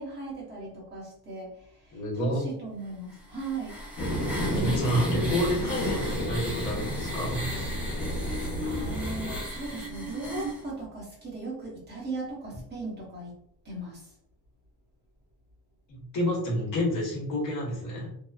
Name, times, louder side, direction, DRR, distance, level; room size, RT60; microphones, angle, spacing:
voice 1, 0.0-3.8 8.1-13.3 13.6-14.1, right 3 dB, 25° right, -5 dB, 0.9 m, -38 dB
voice 2, 1.9-2.4 4.4-7.5 15.9-18.1, equal, 50° left, -3 dB, 1.1 m, -29 dB
sound 1, 3.1-10.6, equal, 5° right, 0.4 m, -36 dB
sound 2, 4.0-9.4, equal, 80° left, 0.9 m, -32 dB
2.9 x 2.0 x 2.3 m, 0.70 s
cardioid pair, 180°, 41 cm